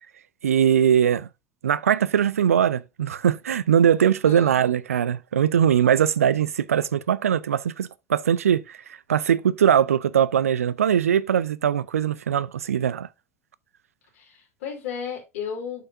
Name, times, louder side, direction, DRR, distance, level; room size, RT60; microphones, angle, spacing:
voice 1, 0.4-1.3 1.6-8.8 9.1-13.1, right 9 dB, 75° right, 0.4 m, -21 dB
voice 2, 4.2-4.6 14.1-15.9, left 7 dB, 65° left, 2.9 m, -34 dB
7.7 x 5.5 x 2.5 m
figure-of-eight pair, 70°, 8 cm